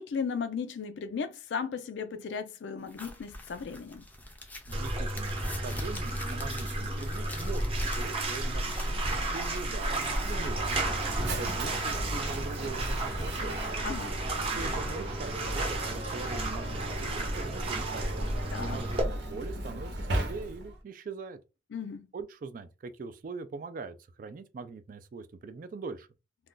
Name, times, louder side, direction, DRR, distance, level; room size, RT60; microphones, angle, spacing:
voice 1, 0.0-4.0 13.8-14.2 18.5-18.8 21.7-22.1, left 6 dB, 75° left, 0.4 m, -36 dB
sound 1, 2.9-11.0, left 1 dB, 10° left, 0.5 m, -45 dB
Bathtub (filling or washing), 4.7-19.0, right 1 dB, 30° right, 0.8 m, -33 dB
voice 2, 4.7-9.0 9.3-13.6 14.4-18.1 18.6-21.4 22.1-26.1, right 4 dB, 50° right, 0.3 m, -42 dB
Mechanisms, 9.7-20.8, right 1 dB, 75° right, 0.8 m, -36 dB
2.4 x 2.2 x 3.7 m
head